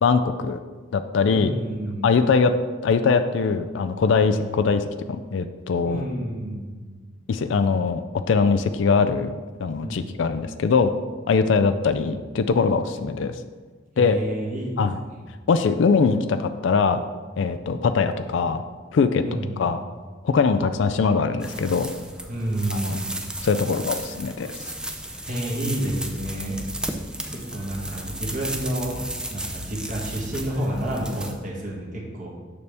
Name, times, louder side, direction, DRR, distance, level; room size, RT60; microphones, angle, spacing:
voice 1, 0.0-0.6 0.9-1.5 2.0-2.5 2.8-4.8 5.1-6.1 7.3-8.0 8.3-9.3 9.6-10.9 11.3-13.3 14.0-14.2 14.8-15.0 15.5-17.0 17.4-18.6 18.9-19.2 19.6-19.8 20.2-21.9 22.7-23.0 23.4-24.5, left 5 dB, 70° left, 9 dB, 0.4 m, -21 dB
voice 2, 1.2-2.0 4.3-4.6 5.8-7.0 9.8-10.2 14.0-14.8 15.1-15.2 19.2-19.7 22.3-23.1 25.2-26.6 27.3-32.3, right 1 dB, 40° right, -3 dB, 1.3 m, -30 dB
sound 1, 21.4-31.3, right 1 dB, 5° right, 0.4 m, -34 dB
6.8 x 6.6 x 3.4 m, 1.4 s
head